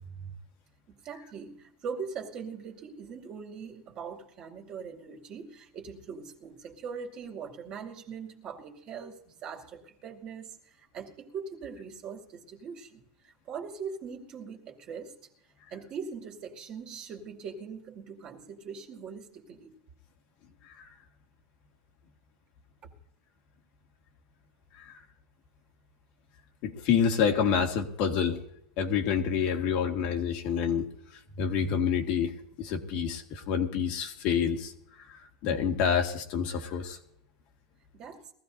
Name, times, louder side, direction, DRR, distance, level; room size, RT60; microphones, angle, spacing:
voice 1, 0.9-15.2 15.7-19.7 37.9-38.3, right 6 dB, 35° right, 2 dB, 2.4 m, -41 dB
voice 2, 26.6-28.4 28.8-37.0, left 7 dB, 50° left, 3 dB, 2.0 m, -28 dB
22.0 x 15.0 x 2.7 m, 0.71 s
supercardioid pair, 135°, 2 cm